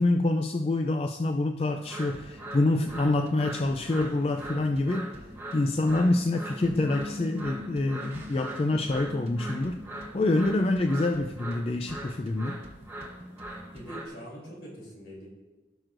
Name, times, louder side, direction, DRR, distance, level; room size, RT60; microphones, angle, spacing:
voice 1, 0.0-5.1 5.5-9.8 10.1-12.6, left 2 dB, 35° left, 5 dB, 0.3 m, -26 dB
sound 1, 1.7-14.1, right 1 dB, 15° right, 0.9 m, -41 dB
sound 2, 2.1-14.1, equal, 35° right, 1.0 m, -51 dB
voice 2, 13.7-15.3, equal, 70° left, -3 dB, 3.3 m, -43 dB
16.5 x 6.1 x 2.6 m, 1.2 s
head